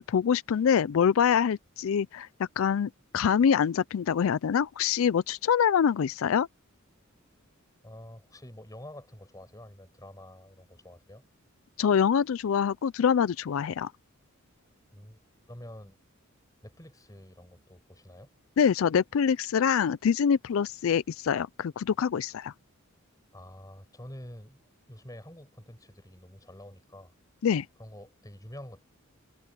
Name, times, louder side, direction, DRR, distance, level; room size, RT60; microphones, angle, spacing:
voice 1, 0.0-6.5 11.8-13.9 18.6-22.5 27.4-27.7, left 7 dB, 70° left, 0.4 m, -25 dB
voice 2, 7.8-11.2 14.9-15.2 15.5-16.0 16.6-18.3 23.3-24.6 24.9-27.1 27.8-29.0, left 1 dB, 15° left, 6.2 m, -47 dB
head